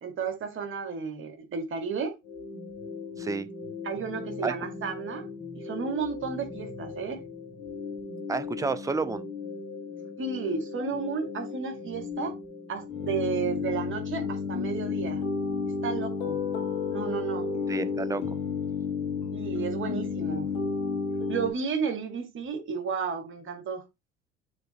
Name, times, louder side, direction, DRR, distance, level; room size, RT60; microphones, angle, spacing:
voice 1, 0.0-2.2 3.8-5.3 5.5-7.2 10.2-12.3 12.7-15.2 15.8-16.4 16.9-17.5 19.3-20.5 21.3-23.8, right 5 dB, 40° right, 2.2 m, -32 dB
sound 1, 2.3-21.5, left 5 dB, 65° left, 2.7 m, -33 dB
voice 2, 3.2-3.5 4.4-4.5 8.3-9.3 17.7-18.4, right 4 dB, 10° right, 0.7 m, -30 dB
6.7 x 4.0 x 5.0 m
figure-of-eight pair, 60°, 32 cm